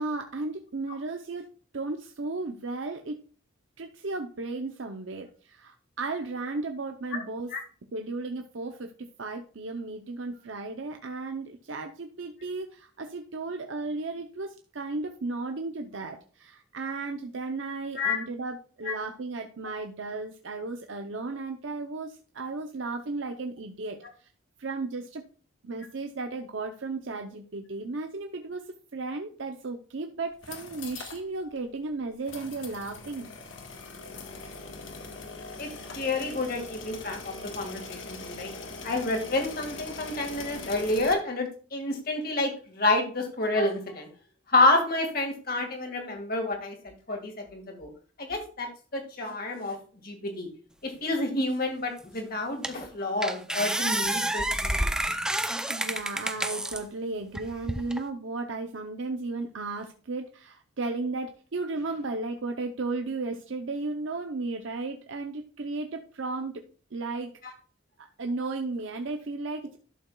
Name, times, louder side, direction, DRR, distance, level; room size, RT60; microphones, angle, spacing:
voice 1, 0.0-1.5 1.7-3.2 3.8-7.5 7.9-24.3 24.6-25.2 25.6-28.7 28.9-33.3 55.7-66.6 66.9-67.3 68.0-69.8, right 3 dB, 80° right, 5 dB, 0.7 m, -34 dB
sound 1, 30.3-31.2 31.6-31.7 32.3-41.1, left 3 dB, 80° left, 1.6 m, -41 dB
voice 2, 35.9-38.5 38.8-44.1 44.5-47.9 48.2-49.8 50.0-50.5 50.8-54.9, left 2 dB, 50° left, 3 dB, 2.1 m, -29 dB
sound 2, 52.0-52.1 52.6-52.9 53.2-56.8 57.3-58.0, right 1 dB, 5° right, 0.5 m, -29 dB
12.0 x 6.7 x 2.3 m, 0.40 s
head